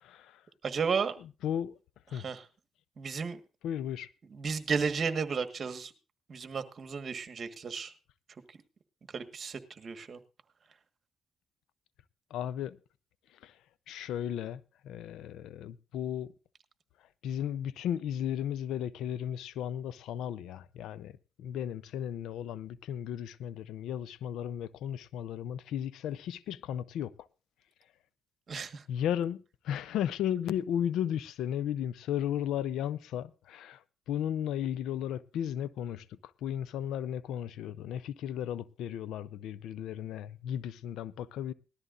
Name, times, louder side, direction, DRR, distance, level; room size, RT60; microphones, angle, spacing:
voice 1, 0.0-0.3 1.4-1.8 2.1-2.2 3.6-4.1 12.3-12.8 13.4-13.5 13.9-16.3 17.2-21.1 21.4-27.1 28.9-33.8 34.1-36.0 36.4-41.5, left 10 dB, 85° left, 0.6 m, -35 dB
voice 2, 0.6-1.1 2.1-2.4 3.0-3.4 4.3-5.9 6.3-7.9 9.1-10.2 28.5-28.8, right 5 dB, 45° right, 1.5 m, -33 dB
19.0 x 13.0 x 2.6 m
cardioid pair, 90°, 0 cm